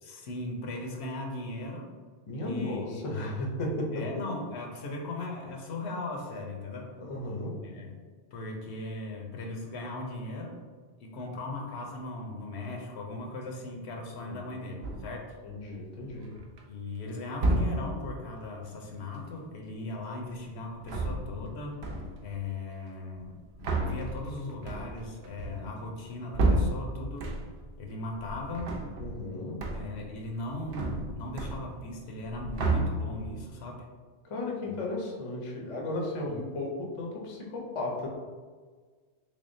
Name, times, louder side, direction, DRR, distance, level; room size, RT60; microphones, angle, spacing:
voice 1, 0.0-1.9 2.4-3.1 3.9-6.9 7.6-8.0 8.3-10.6 11.0-15.4 16.7-21.8 22.2-27.3 27.8-28.8 29.7-33.9 36.3-36.4, left 2 dB, 70° left, 1 dB, 0.9 m, -38 dB
voice 2, 2.3-4.1 7.0-7.6 14.2-14.6 15.4-16.4 29.0-29.7 34.2-38.1, left 2 dB, 40° left, -1 dB, 0.5 m, -35 dB
sound 1, 14.8-15.3 16.1-16.6 17.3-18.1 20.7-21.5 21.8-22.3 23.2-27.7 28.1-29.3 29.6-30.1 30.4-32.0 32.2-33.4, right 2 dB, 65° right, 0.7 m, -31 dB
3.4 x 3.4 x 2.6 m, 1.5 s
omnidirectional pair, 1.2 m